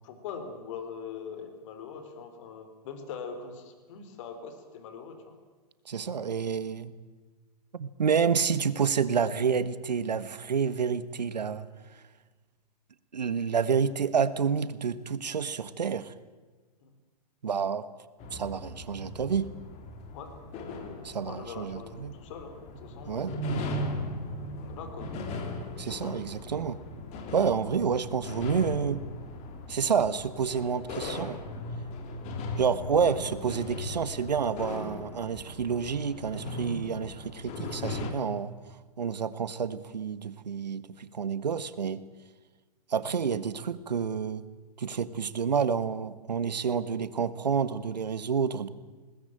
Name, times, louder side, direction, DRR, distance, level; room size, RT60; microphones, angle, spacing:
voice 1, 0.0-5.3 16.8-16.9 20.1-20.4 21.2-23.4 24.5-25.1, left 6 dB, 50° left, 7 dB, 4.1 m, -42 dB
voice 2, 5.8-6.9 7.7-11.7 11.9-12.0 13.1-16.1 17.4-17.8 18.3-19.5 21.0-22.1 23.1-23.4 25.8-26.8 27.3-29.0 29.7-31.4 32.6-38.5 39.0-42.0 42.9-44.4 44.8-48.7, right 6 dB, 85° right, 15 dB, 1.5 m, -29 dB
sound 1, 18.2-38.1, left 1 dB, 35° left, 3.5 m, -38 dB
21.0 x 19.5 x 8.9 m, 1.3 s
hypercardioid pair, 125°, 21 cm